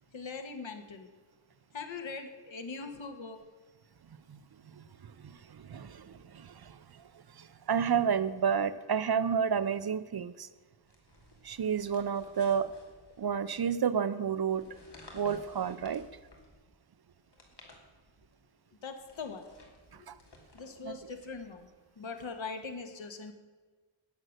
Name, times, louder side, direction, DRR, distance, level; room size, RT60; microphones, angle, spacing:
voice 1, 0.1-1.1 1.7-3.4 18.8-19.5 20.5-21.7 22.0-23.3, left 4 dB, 75° left, 6 dB, 1.5 m, -41 dB
voice 2, 4.8-7.0 7.4-10.5 11.4-12.7 13.2-14.7 15.1-16.1 19.9-20.2 20.8-21.0, right 7 dB, 55° right, 14 dB, 0.6 m, -31 dB
sound 1, 10.8-13.6 14.5-16.7 17.2-18.4 18.9-21.8, left 1 dB, 55° left, 2.9 m, -56 dB
18.5 x 7.6 x 6.5 m, 1.4 s
wide cardioid pair, 115°, 47 cm